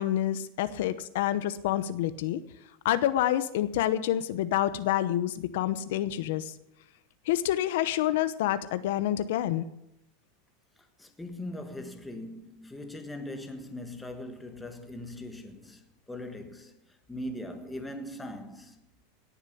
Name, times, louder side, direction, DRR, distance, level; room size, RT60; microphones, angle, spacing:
voice 1, 0.0-2.4 2.8-6.5 7.2-9.6, left 12 dB, 70° left, 0.9 m, -28 dB
voice 2, 11.0-18.8, left 1 dB, 5° left, 1.5 m, -40 dB
18.0 x 7.1 x 8.5 m
supercardioid pair, 150°, 0 cm